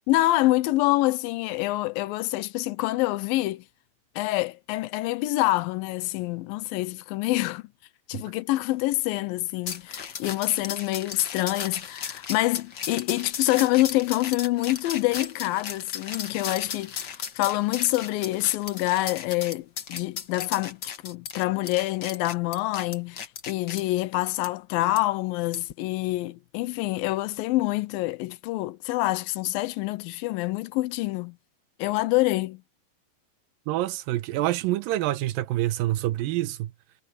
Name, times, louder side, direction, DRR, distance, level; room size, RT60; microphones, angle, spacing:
voice 1, 0.1-3.6 4.2-7.6 8.1-31.4 31.8-32.6, left 18 dB, 80° left, 2.4 m, -26 dB
sound 1, 9.7-23.8 24.4-24.5 25.0-25.1 25.5-25.7, left 7 dB, 65° left, 1.0 m, -36 dB
voice 2, 33.7-36.7, right 15 dB, 80° right, 2.5 m, -27 dB
omnidirectional pair, 4.1 m